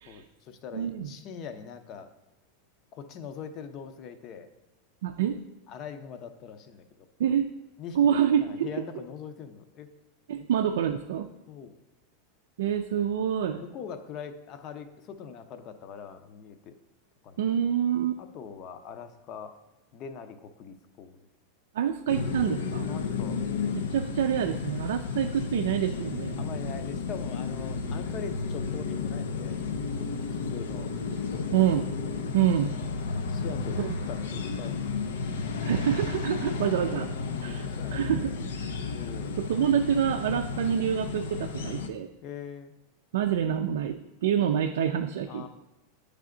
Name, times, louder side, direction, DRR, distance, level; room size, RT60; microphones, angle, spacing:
voice 1, 0.1-2.1 2.9-4.5 5.7-6.9 7.8-9.9 10.4-10.5 11.5-11.8 13.6-16.7 17.2-17.4 18.2-19.6 19.9-21.3 22.8-23.9 26.4-30.9 31.3-31.6 32.4-32.5 33.3-34.9 36.5-36.6 37.4-38.5 38.9-39.3 42.2-42.7 45.3-45.5, left 7 dB, 40° left, 8 dB, 0.6 m, -42 dB
voice 2, 0.7-1.1 5.0-5.4 7.2-7.5 8.0-8.7 10.3-11.3 12.6-13.6 17.4-18.2 21.7-22.9 23.7-26.4 31.5-31.9 32.3-32.7 33.8-34.0 35.6-37.1 37.4-38.3 39.4-42.1 43.1-45.5, right 9 dB, 80° right, 4 dB, 0.3 m, -27 dB
sound 1, 22.1-41.9, left 4 dB, 90° left, 0.5 m, -33 dB
8.5 x 3.4 x 3.7 m, 1.0 s
supercardioid pair, 130°, 0 cm